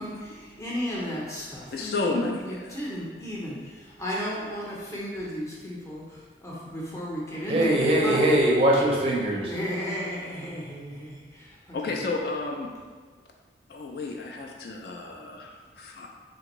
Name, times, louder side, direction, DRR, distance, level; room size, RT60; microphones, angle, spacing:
voice 1, 0.0-8.2 9.5-11.9, equal, 15° left, -5 dB, 0.6 m, -34 dB
voice 2, 1.7-2.8 11.7-12.7 13.7-16.1, left 3 dB, 60° left, 0 dB, 0.3 m, -31 dB
voice 3, 7.5-9.5, right 1 dB, 30° right, -3 dB, 0.5 m, -21 dB
3.5 x 2.5 x 3.0 m, 1.5 s
head